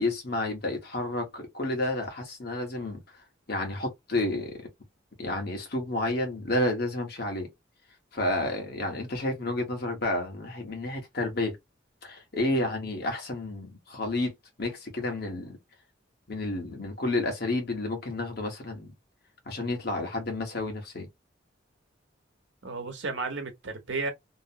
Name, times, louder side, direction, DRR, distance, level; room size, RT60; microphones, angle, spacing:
voice 1, 0.0-3.0 3.5-4.5 5.2-7.5 8.1-11.6 12.0-14.3 14.6-15.6 16.3-18.9 19.5-21.1, left 2 dB, 55° left, 1.2 m, -30 dB
voice 2, 22.6-24.1, right 3 dB, 75° right, 0.9 m, -33 dB
2.9 x 2.0 x 2.7 m
head